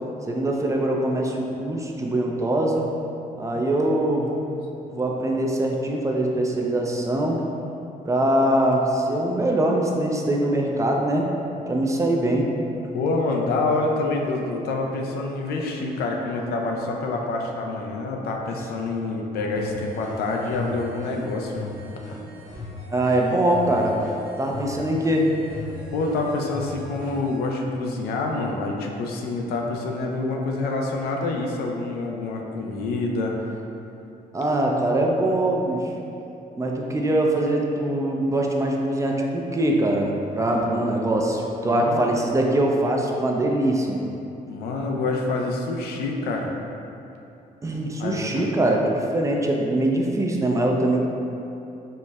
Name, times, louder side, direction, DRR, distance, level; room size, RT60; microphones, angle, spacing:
voice 1, 0.3-2.9 3.4-4.3 4.9-7.4 8.0-11.3 11.7-12.5 22.9-24.0 24.4-25.3 34.3-35.8 36.6-44.0 47.6-51.0, right 1 dB, 20° right, 0 dB, 0.3 m, -22 dB
voice 2, 4.4-4.9 12.9-21.7 25.9-33.4 41.6-42.0 44.5-46.5 48.0-48.2, left 3 dB, 85° left, 0 dB, 0.4 m, -27 dB
sound 1, 19.5-27.4, left 2 dB, 65° right, 1.0 m, -38 dB
4.1 x 2.0 x 2.3 m, 2.8 s
cardioid pair, 85°, 16 cm